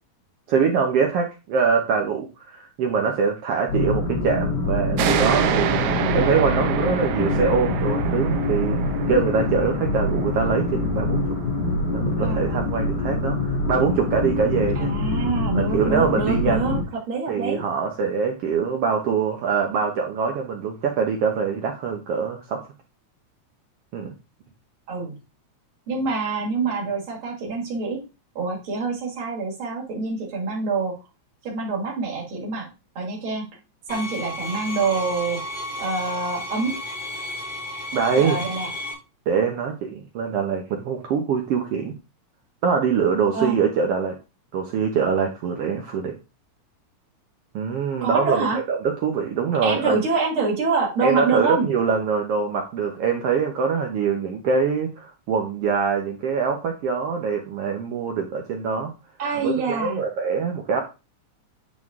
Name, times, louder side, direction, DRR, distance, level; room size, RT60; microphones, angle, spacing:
voice 1, 0.5-8.8 9.1-11.2 11.9-14.9 15.6-16.7 17.3-22.6 23.9-24.1 37.9-38.4 39.3-41.9 42.6-44.1 44.5-46.2 47.5-50.0 51.0-58.9 59.3-60.8, right 6 dB, 65° right, 2 dB, 1.6 m, -24 dB
sound 1, 3.7-16.8, left 2 dB, 40° left, 2.2 m, -25 dB
sound 2, 5.0-12.1, right 10 dB, 80° right, 1.3 m, -28 dB
voice 2, 12.2-12.6 14.7-16.8 17.1-17.6 24.9-25.1 25.9-28.0 28.3-30.9 31.4-32.7 32.9-33.4 33.9-35.4 35.8-36.8 38.2-38.7 43.3-43.6 48.0-48.6 49.6-51.7 59.2-60.0, right 4 dB, 45° right, -2 dB, 3.0 m, -26 dB
sound 3, 33.9-38.9, left 1 dB, 5° left, 2.5 m, -33 dB
9.2 x 4.2 x 3.6 m, 0.29 s
omnidirectional pair, 3.4 m